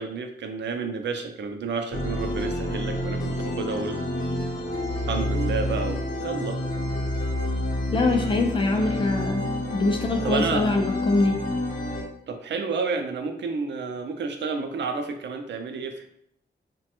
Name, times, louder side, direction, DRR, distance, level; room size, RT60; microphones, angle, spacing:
voice 1, 0.0-4.0 5.1-6.6 8.8-9.0 10.2-10.7 12.3-16.1, right 4 dB, 70° right, 5 dB, 0.4 m, -30 dB
sound 1, 1.9-12.0, left 1 dB, 45° left, 0.7 m, -29 dB
voice 2, 7.9-11.4, left 2 dB, 25° left, 3 dB, 0.3 m, -24 dB
3.0 x 2.2 x 2.9 m, 0.72 s
wide cardioid pair, 155°, 19 cm